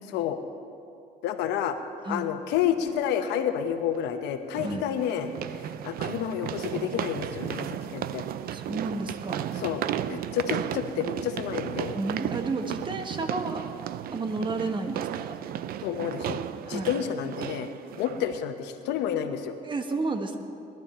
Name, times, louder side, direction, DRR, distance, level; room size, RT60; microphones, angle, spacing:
voice 1, 1.2-1.8 2.1-5.3 5.6-8.2 9.5-11.9 15.8-16.4 16.7-17.7 18.0-19.5, left 9 dB, 90° left, 7 dB, 1.0 m, -29 dB
sound 1, 2.6-2.7 4.5-18.4, right 11 dB, 60° right, 0.5 m, -34 dB
voice 2, 8.5-9.5 11.9-13.6 14.1-15.4 16.6-17.0 19.6-20.4, right 3 dB, 30° right, 6 dB, 1.4 m, -31 dB
20.0 x 12.0 x 4.4 m, 2.6 s
cardioid pair, 110°, 17 cm